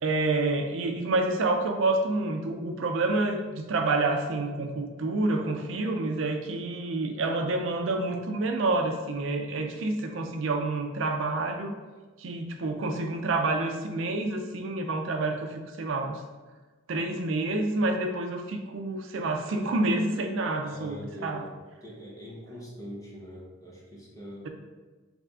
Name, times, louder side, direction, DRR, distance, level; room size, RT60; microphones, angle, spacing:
voice 1, 0.0-11.8 12.2-16.2 16.9-21.5, right 2 dB, 70° right, 4 dB, 0.4 m, -28 dB
voice 2, 20.6-21.5 21.8-24.5, equal, 15° left, -4 dB, 0.9 m, -43 dB
3.5 x 3.3 x 3.7 m, 1.3 s
head